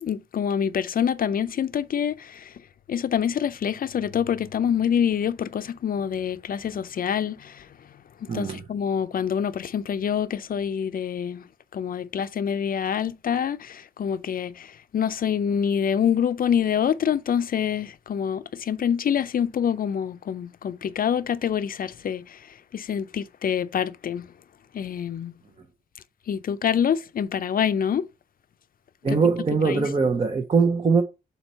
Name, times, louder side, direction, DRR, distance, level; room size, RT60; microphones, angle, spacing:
voice 1, 0.0-2.5 2.9-7.6 8.2-11.4 11.7-22.4 22.7-24.3 24.7-25.3 26.3-28.1 29.1-29.2 29.6-29.8, left 8 dB, 60° left, 0.5 m, -26 dB
voice 2, 8.3-8.6 29.0-31.0, right 4 dB, 35° right, 0.7 m, -21 dB
4.5 x 4.1 x 5.5 m
wide cardioid pair, 150°, 17 cm